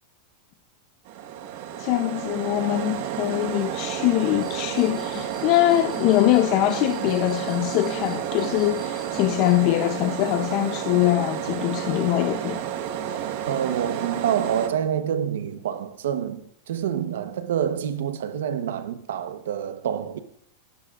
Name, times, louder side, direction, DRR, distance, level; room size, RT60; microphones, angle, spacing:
sound 1, 1.0-14.7, right 10 dB, 55° right, 1.3 m, -31 dB
voice 1, 1.8-12.6, left 16 dB, 45° left, 0.6 m, -23 dB
sound 2, 4.3-9.5, left 1 dB, ahead, 4.6 m, -48 dB
voice 2, 13.5-16.4 16.7-20.2, right 9 dB, 90° right, 1.0 m, -27 dB
22.0 x 13.0 x 2.5 m
supercardioid pair, 150°, 0 cm